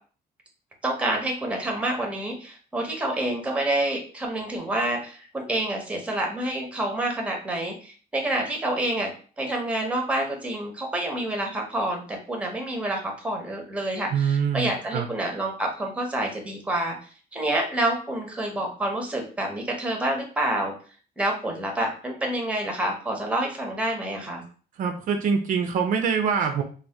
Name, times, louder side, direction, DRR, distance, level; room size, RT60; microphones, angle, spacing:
voice 1, 0.8-9.1 9.4-17.0 17.3-20.7 21.2-24.4, right 1 dB, 10° right, 2 dB, 0.6 m, -28 dB
voice 2, 14.1-15.1 24.8-26.6, right 6 dB, 55° right, 4 dB, 0.4 m, -24 dB
2.6 x 2.1 x 3.3 m, 0.40 s
cardioid pair, 155°, 16 cm